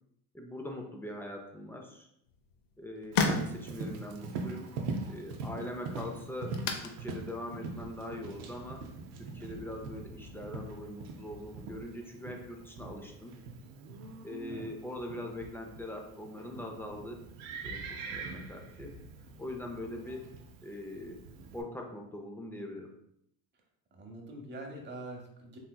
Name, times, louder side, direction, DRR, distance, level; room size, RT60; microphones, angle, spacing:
voice 1, 0.3-2.1 2.8-4.7 5.1-8.9 9.2-13.3 14.2-17.2 17.6-19.0 19.4-20.3 20.6-21.2 21.5-22.9, left 1 dB, 5° left, 1 dB, 0.3 m, -42 dB
sound 1, 2.2-9.5, left 4 dB, 55° left, 0.6 m, -38 dB
Livestock farm animals working animals, 3.1-21.6, right 3 dB, 80° right, 0.6 m, -43 dB
voice 2, 23.9-25.6, right 1 dB, 25° right, 1 dB, 0.8 m, -45 dB
3.3 x 2.8 x 2.2 m, 0.76 s
supercardioid pair, 95°, 42 cm